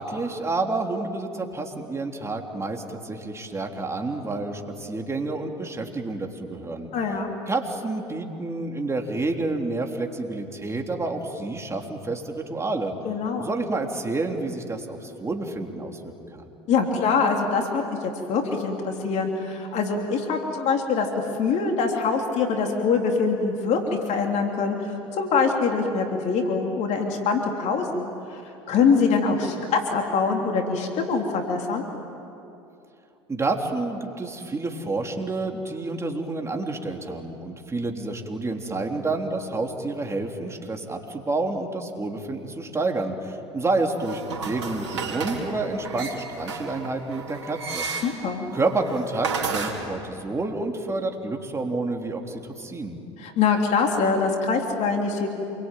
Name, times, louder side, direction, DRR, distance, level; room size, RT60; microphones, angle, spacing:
voice 1, 0.0-6.9 7.5-12.9 13.4-16.5 33.3-47.9 48.5-53.0, right 2 dB, 20° right, 2 dB, 3.5 m, -29 dB
voice 2, 6.9-7.3 13.0-13.5 16.7-21.1 21.4-23.8 24.1-28.4 28.7-31.8 48.0-48.4 53.2-55.3, left 5 dB, 50° left, 2 dB, 3.4 m, -24 dB
sound 1, 44.0-49.7, right 5 dB, 85° right, 3.6 m, -33 dB
27.5 x 23.0 x 9.2 m, 2.7 s
hypercardioid pair, 80°, 14 cm